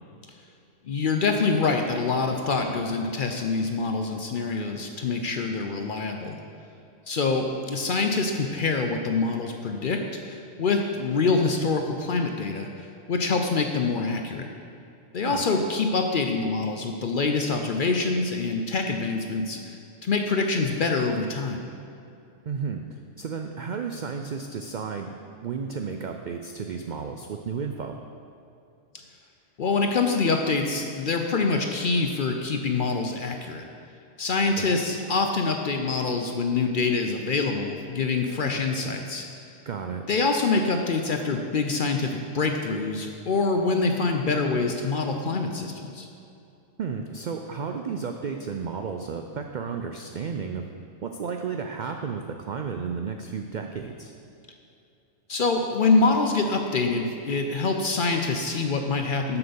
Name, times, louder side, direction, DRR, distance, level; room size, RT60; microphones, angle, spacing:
voice 1, 0.8-6.4 7.1-14.5 15.1-21.7 29.6-33.7 34.2-39.3 40.1-46.1 55.3-59.4, left 4 dB, 55° left, 4 dB, 0.6 m, -25 dB
voice 2, 22.5-25.1 25.4-28.0 34.6-34.7 39.7-40.0 46.8-50.6 51.0-54.1, right 5 dB, 90° right, 4 dB, 0.4 m, -33 dB
7.6 x 5.9 x 6.9 m, 2.6 s
omnidirectional pair, 1.4 m